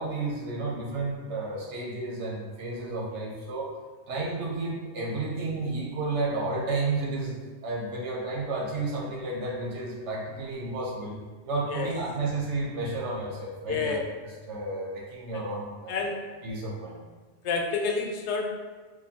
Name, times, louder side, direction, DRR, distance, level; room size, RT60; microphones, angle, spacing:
voice 1, 0.0-3.7 4.1-7.3 7.6-11.2 11.4-14.0 14.5-16.2 16.4-17.0, right 3 dB, 85° right, -3 dB, 1.2 m, -32 dB
voice 2, 13.7-14.0 15.3-15.4 15.9-16.2 17.4-18.5, left 4 dB, 80° left, 2 dB, 0.9 m, -29 dB
4.8 x 2.3 x 2.8 m, 1.3 s
omnidirectional pair, 1.2 m